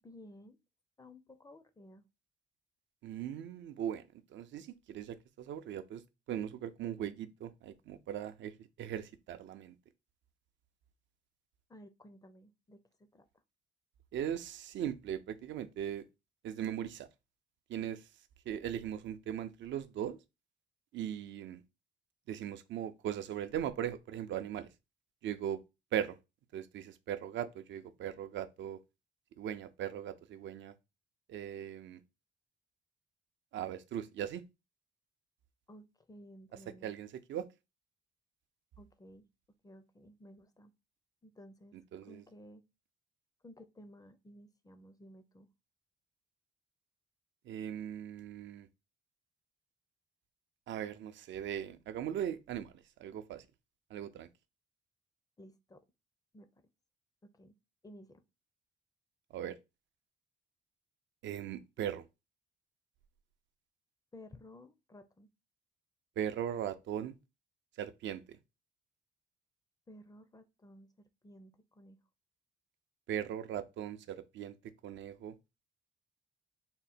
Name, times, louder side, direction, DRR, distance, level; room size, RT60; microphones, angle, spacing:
voice 1, 0.0-0.6 1.0-2.1 11.7-13.3 35.7-36.9 38.8-39.3 39.6-40.7 41.2-42.6 43.4-45.5 55.4-55.8 56.3-56.5 57.2-57.6 57.8-58.2 64.1-65.3 69.9-72.0, left 1 dB, 20° left, 0.5 m, -55 dB
voice 2, 3.0-4.0 4.3-6.0 6.3-9.7 14.1-16.0 16.4-17.1 17.7-18.1 18.5-20.2 20.9-21.6 22.3-24.7 25.2-25.6 25.9-26.2 26.5-28.8 29.4-30.7 31.3-32.0 33.5-34.4 36.8-37.5 41.9-42.2 47.5-48.7 50.7-53.4 53.9-54.3 59.3-59.6 61.2-62.0 66.2-67.1 67.8-68.4 73.1-74.5 74.8-75.3, right 10 dB, 70° right, 0.5 m, -39 dB
3.7 x 2.2 x 4.1 m
cardioid pair, 90°, 20 cm